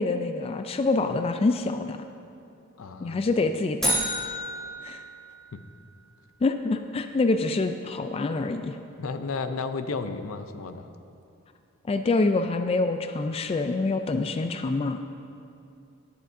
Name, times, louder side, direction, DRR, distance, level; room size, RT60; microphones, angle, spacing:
voice 1, 0.0-2.0 3.0-4.1 4.8-5.0 6.4-8.8 11.9-15.0, left 3 dB, 30° left, 8 dB, 0.3 m, -26 dB
voice 2, 2.8-3.2 5.5-5.6 9.0-10.9, left 4 dB, 80° left, 9 dB, 0.6 m, -33 dB
sound 1, 3.8-5.9, right 1 dB, ahead, 2.3 m, -31 dB
17.5 x 7.6 x 2.6 m, 2.5 s
head